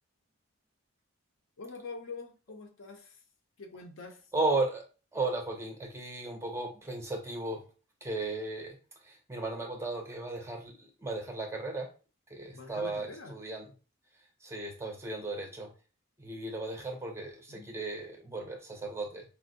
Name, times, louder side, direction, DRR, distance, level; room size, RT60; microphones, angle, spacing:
voice 1, 1.6-3.2 3.6-4.2 12.5-13.4 17.5-17.7, left 3 dB, 65° left, 5 dB, 0.6 m, -45 dB
voice 2, 4.3-4.9 5.1-7.6 8.0-8.8 9.0-11.9 12.3-13.7 14.4-15.7 16.2-19.2, right 2 dB, 10° right, 2 dB, 0.4 m, -35 dB
4.3 x 2.0 x 2.5 m, 0.35 s
head